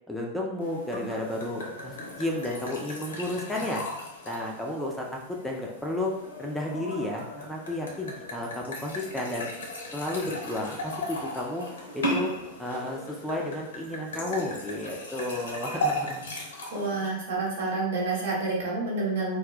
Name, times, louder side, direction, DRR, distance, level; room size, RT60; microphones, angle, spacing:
voice 1, 0.1-3.8 4.2-6.1 6.4-9.5 9.9-11.7 11.9-12.3 12.6-16.2, left 1 dB, 5° left, -2 dB, 0.4 m, -32 dB
sound 1, 0.6-17.1, equal, 65° left, 0.6 m, -36 dB
voice 2, 16.7-19.4, right 3 dB, 60° right, -3 dB, 0.8 m, -28 dB
2.1 x 2.0 x 3.8 m, 0.81 s
figure-of-eight pair, 90°, 0 cm